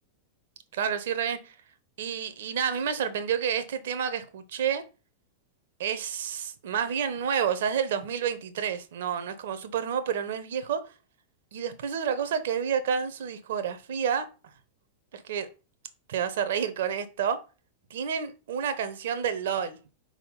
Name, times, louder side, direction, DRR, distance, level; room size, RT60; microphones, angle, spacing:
voice 1, 0.7-1.5 2.0-4.8 5.8-10.9 11.5-14.3 15.1-15.5 16.1-17.4 17.9-19.8, right 7 dB, 60° right, 1.0 m, -29 dB
5.0 x 4.9 x 5.2 m
figure-of-eight pair, 90°, 0 cm